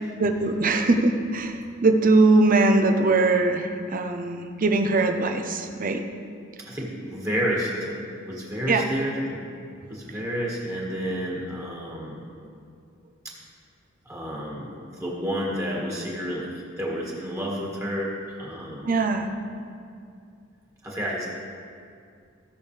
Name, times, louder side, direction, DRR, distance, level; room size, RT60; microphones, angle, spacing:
voice 1, 0.2-6.1 8.7-8.9 18.8-19.3, right 3 dB, 45° right, 6 dB, 0.7 m, -21 dB
voice 2, 6.6-8.0 8.2-9.4 9.9-12.2 13.2-13.3 14.0-16.5 16.8-18.9 20.8-21.3, equal, 15° right, -4 dB, 1.8 m, -30 dB
16.5 x 6.4 x 3.4 m, 2.3 s
head